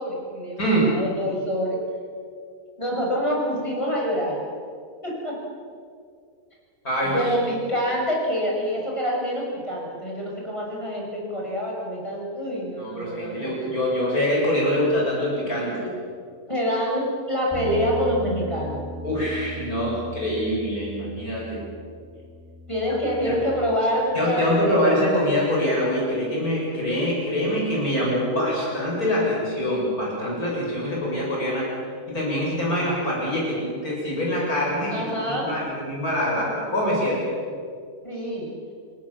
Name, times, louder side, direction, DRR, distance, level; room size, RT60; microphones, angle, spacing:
voice 1, 0.0-0.7 0.9-1.8 2.8-4.4 5.0-5.3 7.0-13.5 16.5-19.0 22.7-25.0 34.9-35.5 38.0-38.5, equal, 20° left, -3 dB, 6.6 m, -26 dB
voice 2, 0.6-0.9 6.8-7.4 12.8-15.9 19.0-21.6 23.1-23.4 24.1-31.7 32.1-37.3, equal, 65° left, -4 dB, 7.9 m, -24 dB
Bass guitar, 17.5-23.8, right 1 dB, 10° right, 4.0 m, -37 dB
29.0 x 18.5 x 7.2 m, 2.2 s
omnidirectional pair, 1.7 m